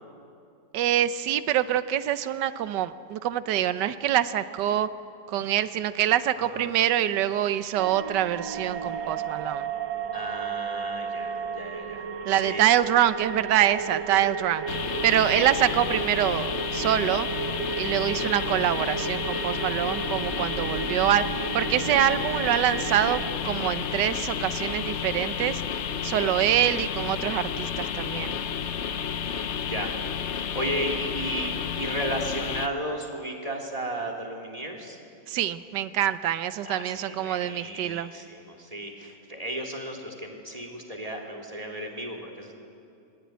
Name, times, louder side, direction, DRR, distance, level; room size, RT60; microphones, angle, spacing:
voice 1, 0.7-4.9 5.3-9.7 12.3-14.8 15.0-17.3 17.8-21.2 21.5-25.6 26.0-28.4 35.3-38.1, right 11 dB, 70° right, 12 dB, 1.4 m, -25 dB
voice 2, 6.4-6.7 10.1-12.6 15.3-15.4 20.5-20.9 26.1-26.4 29.0-29.9 30.3-35.0 36.6-42.6, right 1 dB, 20° right, 2 dB, 3.2 m, -34 dB
sound 1, 7.8-23.3, right 6 dB, 85° right, 2.1 m, -34 dB
sound 2, 14.7-32.7, left 7 dB, 55° left, 0.8 m, -31 dB
26.5 x 21.0 x 9.5 m, 2.6 s
omnidirectional pair, 2.0 m